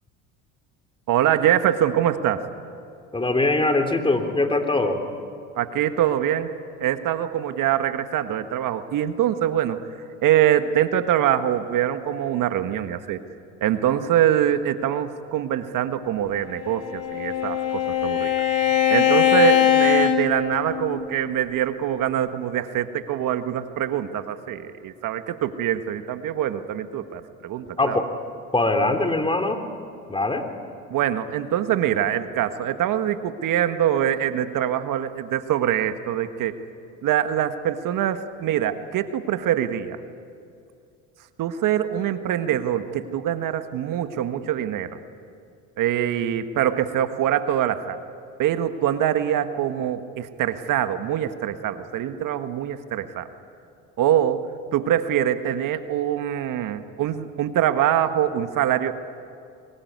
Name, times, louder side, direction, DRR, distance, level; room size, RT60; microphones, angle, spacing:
voice 1, 1.1-2.4 5.5-6.5 6.8-9.8 10.2-13.2 13.6-18.3 18.9-28.0 30.9-36.5 37.0-40.0 41.4-45.0 45.8-48.0 48.4-53.3 54.0-54.4 54.7-58.9, right 11 dB, 55° right, 9 dB, 1.6 m, -24 dB
voice 2, 3.1-5.0 27.8-28.1 28.5-29.6 30.1-30.4, left 2 dB, 15° left, 5 dB, 3.4 m, -22 dB
Bowed string instrument, 16.6-21.1, left 10 dB, 55° left, 2.9 m, -21 dB
25.0 x 22.0 x 9.5 m, 2.5 s
hypercardioid pair, 80°, 38 cm